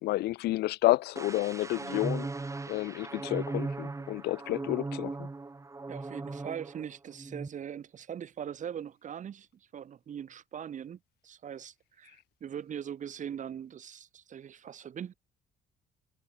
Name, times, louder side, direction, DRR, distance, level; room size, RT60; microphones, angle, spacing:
voice 1, 0.0-2.3 2.7-5.3, left 17 dB, 75° left, 0.7 m, -30 dB
sound 1, 1.2-6.9 7.2-7.5, right 3 dB, 20° right, 6.4 m, -38 dB
voice 2, 5.9-15.1, right 9 dB, 50° right, 3.5 m, -41 dB
cardioid pair, 110°, 17 cm